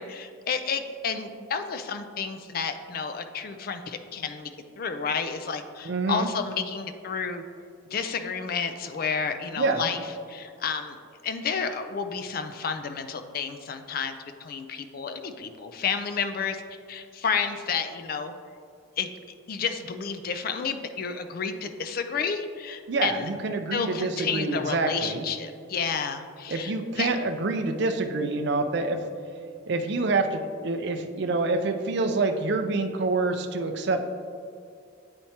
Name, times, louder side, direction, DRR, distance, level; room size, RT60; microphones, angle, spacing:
voice 1, 0.0-7.4 7.9-10.0 10.3-11.0 11.2-14.1 14.4-16.6 16.9-18.3 19.0-19.1 19.5-23.3 23.7-27.1, left 6 dB, 45° left, 8 dB, 0.3 m, -31 dB
voice 2, 5.8-6.3 9.6-9.9 22.9-25.3 26.5-29.0 29.7-34.0, right 3 dB, 55° right, 7 dB, 0.4 m, -27 dB
8.6 x 4.4 x 2.8 m, 2.4 s
head